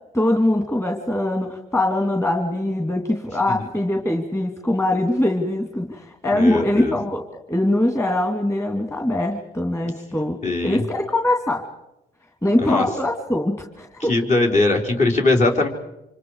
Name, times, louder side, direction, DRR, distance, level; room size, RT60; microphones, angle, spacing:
voice 1, 0.1-10.4 10.6-11.6 12.4-14.1, left 1 dB, 15° left, 2 dB, 2.9 m, -22 dB
voice 2, 6.3-6.9 10.4-10.8 12.6-12.8 14.1-15.7, left 2 dB, 45° left, 1 dB, 4.5 m, -20 dB
28.0 x 26.0 x 5.0 m, 0.91 s
cardioid pair, 105°, 17 cm